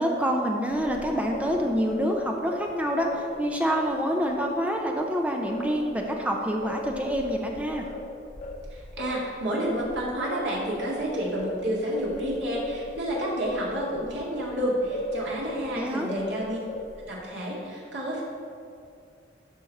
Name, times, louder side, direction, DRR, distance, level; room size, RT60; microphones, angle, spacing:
voice 1, 0.0-7.9 15.7-16.1, equal, 10° right, 1 dB, 0.6 m, -27 dB
Singing, 0.7-5.1 5.5-15.8 16.1-17.1, left 1 dB, 45° left, 0.9 m, -38 dB
voice 2, 8.7-16.6 17.1-18.2, right 1 dB, 90° right, -4 dB, 2.3 m, -30 dB
12.5 x 5.3 x 4.1 m, 2.3 s
head